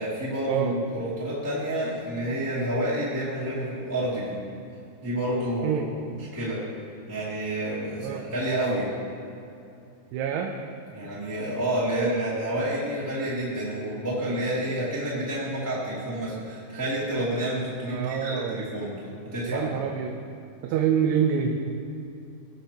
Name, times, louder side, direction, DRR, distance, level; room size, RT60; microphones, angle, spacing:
voice 1, 0.0-4.4 5.0-5.8 6.1-6.6 7.1-8.9 10.9-18.9 19.3-19.8, right 1 dB, 5° right, -9 dB, 1.7 m, -29 dB
voice 2, 10.1-10.5 17.9-18.6 19.5-20.2 20.6-21.7, right 8 dB, 90° right, 2 dB, 2.8 m, -26 dB
20.5 x 7.0 x 3.0 m, 2.6 s
omnidirectional pair, 4.7 m